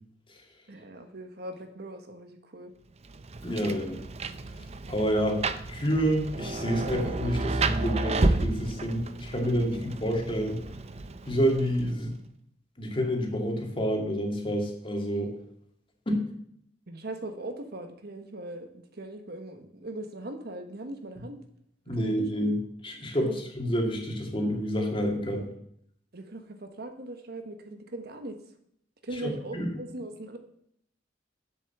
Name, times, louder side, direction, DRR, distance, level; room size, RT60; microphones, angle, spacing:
voice 1, 0.7-2.7 3.5-3.9 9.5-9.6 16.9-21.4 22.0-22.3 23.3-23.5 26.1-28.4 29.0-30.4, right 1 dB, 60° right, 6 dB, 1.2 m, -40 dB
Rain, 3.0-12.1, right 3 dB, 35° right, 0.6 m, -32 dB
voice 2, 3.4-4.0 4.9-5.4 5.7-10.6 11.3-12.2 12.8-15.3 16.1-16.2 21.9-23.3 23.6-25.5 29.2-29.7, equal, 30° left, 1 dB, 2.2 m, -28 dB
8.0 x 7.1 x 7.1 m, 0.70 s
head